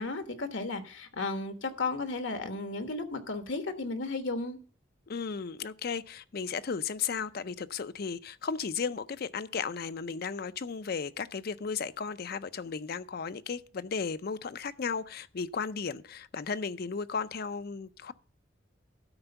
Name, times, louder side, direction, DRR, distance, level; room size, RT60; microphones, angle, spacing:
voice 1, 0.0-4.6, left 3 dB, 75° left, 1.3 m, -34 dB
voice 2, 5.1-18.1, left 5 dB, 50° left, 0.5 m, -35 dB
12.5 x 4.4 x 6.9 m
head